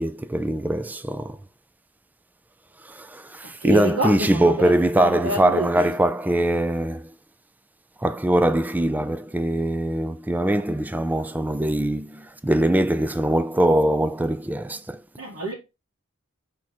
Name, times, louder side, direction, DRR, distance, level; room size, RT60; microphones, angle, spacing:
voice 1, 0.0-1.4 2.8-7.1 8.0-15.0, right 1 dB, 10° right, 0.3 m, -22 dB
voice 2, 3.6-5.9 15.2-15.5, right 1 dB, 80° right, 1.9 m, -28 dB
6.2 x 3.7 x 4.2 m
head